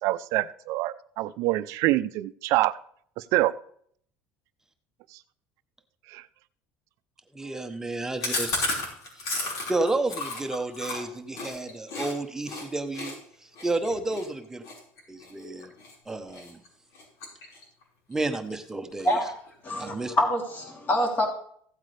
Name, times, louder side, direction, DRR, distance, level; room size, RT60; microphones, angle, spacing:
voice 1, 0.0-2.7 3.3-3.5 6.1-6.2, right 17 dB, 65° right, 14 dB, 0.6 m, -25 dB
voice 2, 7.3-8.7 9.3-13.1 13.6-14.6 15.1-15.7 16.1-16.6 18.1-19.2 19.8-20.1, right 2 dB, 10° right, 6 dB, 1.0 m, -31 dB
Chewing mastication, 8.2-12.1 12.4-12.6 12.9-15.9 16.3-16.7 16.9-17.8 18.1-18.2 18.5-18.6 18.9-19.5, left 2 dB, 70° left, 4.9 m, -33 dB
voice 3, 19.6-21.3, equal, 35° left, 1 dB, 3.2 m, -26 dB
15.5 x 8.3 x 3.4 m, 0.62 s
cardioid pair, 140°, 6 cm